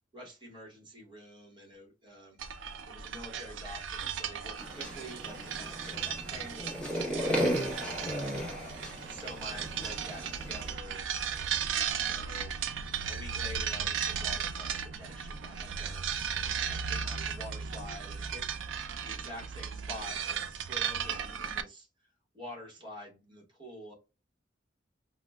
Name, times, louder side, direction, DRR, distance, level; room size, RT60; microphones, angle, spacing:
voice 1, 0.1-2.4 2.9-8.6 9.0-12.5 13.1-18.5 19.0-21.9 22.3-23.9, equal, 25° right, 0 dB, 1.1 m, -48 dB
sound 1, 2.4-21.6, right 7 dB, 90° right, 0.4 m, -36 dB
Snoring during a sleep, 4.6-10.7, equal, 5° left, 0.9 m, -35 dB
4.8 x 2.1 x 2.2 m, 0.28 s
head